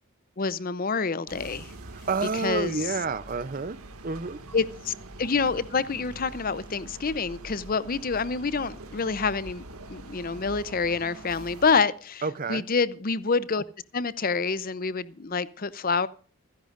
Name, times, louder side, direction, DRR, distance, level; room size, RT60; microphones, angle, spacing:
voice 1, 0.4-1.7 2.3-2.8 4.5-4.9 5.2-9.6 9.9-12.2 12.5-13.6 13.9-16.1, left 4 dB, 40° left, 0.6 m, -27 dB
sound 1, 1.3-11.8, right 2 dB, 85° right, 1.9 m, -44 dB
voice 2, 1.9-4.4 12.2-12.6, right 4 dB, 40° right, 0.6 m, -30 dB
27.5 x 10.5 x 2.5 m
head